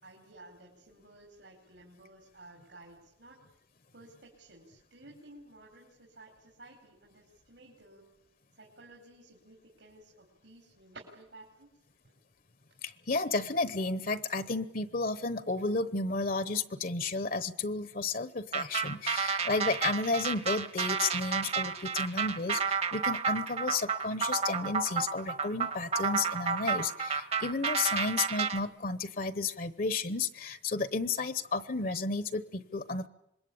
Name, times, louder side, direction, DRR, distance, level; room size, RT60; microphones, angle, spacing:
voice 1, 0.0-3.4 3.9-8.1 8.5-11.7, right 2 dB, 75° right, 0 dB, 4.7 m, -54 dB
voice 2, 12.8-33.1, left 3 dB, 50° left, 14 dB, 1.0 m, -32 dB
sound 1, 18.5-28.6, right 6 dB, 35° right, 1.1 m, -31 dB
26.0 x 22.0 x 8.7 m, 0.81 s
head